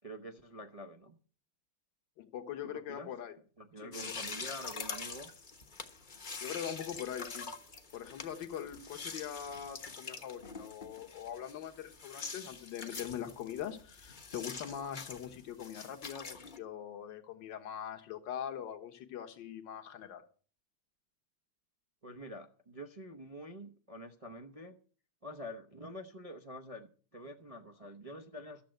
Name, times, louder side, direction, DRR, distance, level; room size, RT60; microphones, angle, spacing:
voice 1, 0.0-1.2 2.6-3.1 3.6-5.3 22.0-24.8 25.2-28.6, equal, 30° right, 3 dB, 0.6 m, -47 dB
voice 2, 2.2-3.4 3.8-4.2 6.4-7.5 7.9-20.2, left 9 dB, 65° left, 5 dB, 1.9 m, -42 dB
sound 1, 3.9-16.6, left 4 dB, 30° left, 1.0 m, -45 dB
13.0 x 7.6 x 7.8 m, 0.41 s
omnidirectional pair, 2.2 m